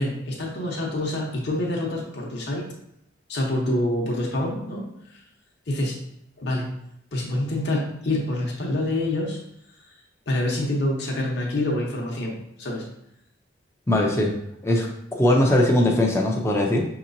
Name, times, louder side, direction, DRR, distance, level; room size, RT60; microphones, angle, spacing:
voice 1, 0.0-2.7 3.3-4.8 5.1-5.2 5.7-6.0 6.4-6.7 7.1-9.4 10.3-12.9, left 1 dB, 55° left, -2 dB, 0.8 m, -26 dB
voice 2, 13.9-14.3 14.6-16.9, left 1 dB, 15° left, 0 dB, 0.5 m, -20 dB
5.8 x 2.9 x 2.6 m, 0.77 s
head